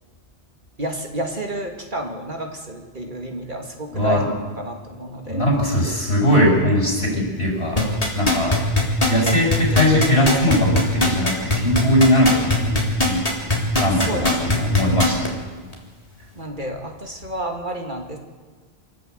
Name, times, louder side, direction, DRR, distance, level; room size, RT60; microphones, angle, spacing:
voice 1, 0.8-4.2 4.6-5.5 14.1-14.8 16.4-18.2, right 1 dB, 50° right, 3 dB, 2.5 m, -30 dB
voice 2, 3.9-4.3 5.2-7.9 8.1-8.6 9.1-13.2 13.8-15.3, left 1 dB, 75° left, -1 dB, 6.9 m, -20 dB
sound 1, 7.8-15.3 15.7-15.8, left 2 dB, 35° left, 3.7 m, -19 dB
27.5 x 13.0 x 8.1 m, 1.4 s
omnidirectional pair, 1.1 m